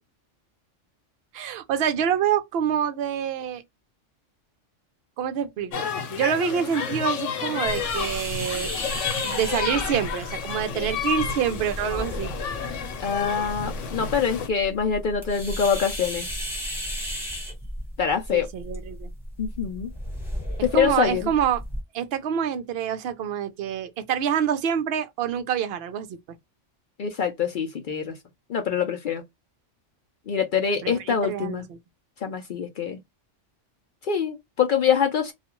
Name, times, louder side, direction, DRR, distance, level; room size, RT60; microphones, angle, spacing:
voice 1, 1.3-3.6 5.2-8.7 9.2-12.3 18.3-19.1 20.7-21.6 21.9-26.2 30.8-31.8, right 8 dB, 65° right, 0.7 m, -26 dB
sound 1, 5.7-14.5, left 7 dB, 75° left, 1.0 m, -31 dB
sound 2, 7.7-21.8, equal, ahead, 1.1 m, -35 dB
voice 2, 13.0-16.3 18.0-18.5 19.4-19.9 20.6-21.3 27.0-28.1 28.5-29.2 30.3-31.7 32.2-33.0 34.0-35.3, left 7 dB, 60° left, 0.5 m, -25 dB
2.4 x 2.2 x 2.9 m
omnidirectional pair, 1.3 m